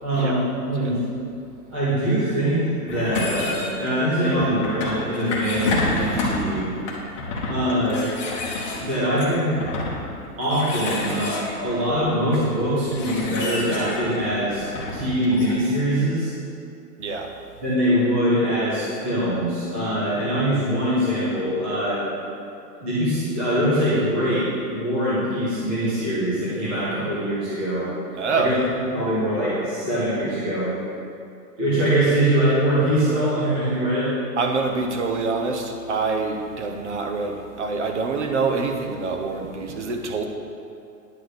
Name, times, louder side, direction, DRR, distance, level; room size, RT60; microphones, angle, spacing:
voice 1, 0.0-0.4 0.7-1.0 1.7-6.7 7.5-8.1 8.8-9.5 10.4-16.3 17.6-22.0 22.8-27.9 28.3-30.7 31.6-34.1, equal, 5° right, -10 dB, 0.6 m, -23 dB
sound 1, 2.9-15.5, left 2 dB, 20° left, 1.1 m, -30 dB
voice 2, 17.0-17.3 28.1-28.6 34.4-40.2, right 4 dB, 45° right, 4 dB, 1.1 m, -25 dB
10.0 x 4.8 x 7.8 m, 2.5 s
hypercardioid pair, 175°, 48 cm